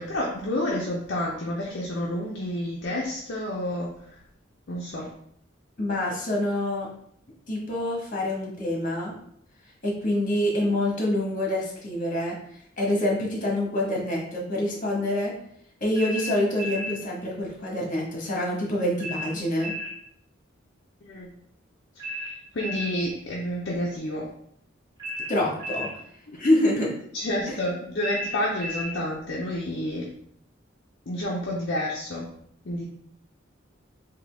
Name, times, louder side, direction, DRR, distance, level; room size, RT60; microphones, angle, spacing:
voice 1, 0.0-3.9 4.7-5.1 21.0-21.4 22.5-24.3 26.3-26.4 27.1-30.1 31.1-32.3 32.6-32.8, left 1 dB, 60° left, -3 dB, 0.6 m, -29 dB
voice 2, 5.8-6.9 7.5-9.1 9.8-12.4 12.8-15.3 15.8-19.7 25.3-25.9 26.3-26.9 27.5-27.6, left 1 dB, 40° left, -3 dB, 1.3 m, -26 dB
sound 1, 16.0-17.0 19.0-20.0 22.0-23.0 25.0-26.0 28.0-29.0, left 1 dB, 20° right, 1.5 m, -33 dB
3.8 x 2.8 x 3.5 m, 0.69 s
head